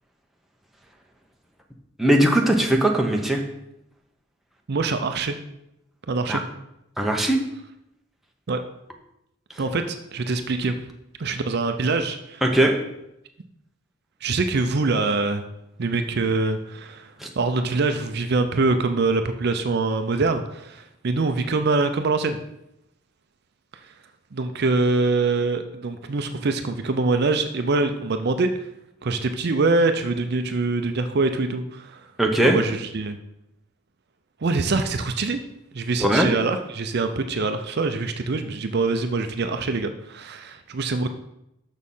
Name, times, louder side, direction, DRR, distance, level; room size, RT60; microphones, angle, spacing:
voice 1, 2.0-3.4 6.3-6.4 7.0-7.4 12.4-12.7 17.2-17.3 32.2-32.6 36.0-36.3, right 1 dB, ahead, 0 dB, 0.8 m, -19 dB
voice 2, 4.7-5.4 6.1-6.4 8.5-8.6 9.6-10.7 11.2-12.4 14.2-15.4 15.8-22.4 24.3-28.5 29.0-32.0 32.4-33.2 34.4-35.4 35.7-41.1, right 3 dB, 50° right, 7 dB, 0.5 m, -24 dB
6.5 x 6.2 x 5.5 m, 0.84 s
head